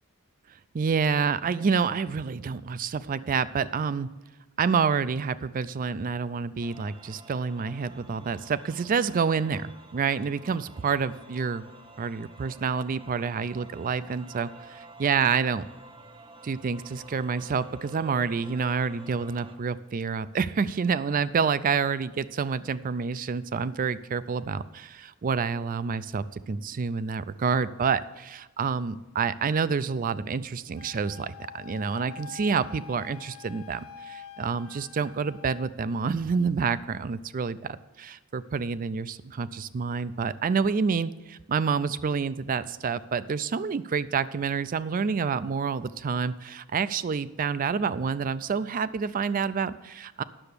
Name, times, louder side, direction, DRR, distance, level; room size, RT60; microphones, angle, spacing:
voice 1, 0.7-4.1 4.6-11.6 12.0-15.6 16.4-50.2, right 5 dB, 40° right, 15 dB, 0.4 m, -28 dB
sound 1, 6.6-19.6, right 2 dB, 25° right, 0.8 m, -49 dB
Wind instrument woodwind instrument, 30.8-35.7, left 7 dB, 75° left, 0.6 m, -46 dB
9.8 x 6.9 x 6.7 m, 1.1 s
head